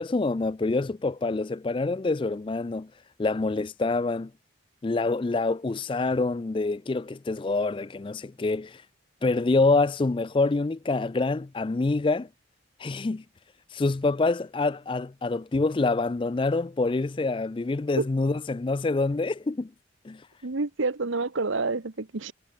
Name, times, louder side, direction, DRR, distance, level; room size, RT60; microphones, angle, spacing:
voice 1, 0.0-2.9 3.2-4.3 4.8-8.8 9.2-12.3 12.8-13.2 13.7-19.7 20.0-20.2, left 3 dB, 25° left, 0.3 m, -26 dB
voice 2, 20.4-22.3, right 3 dB, 80° right, 1.1 m, -28 dB
head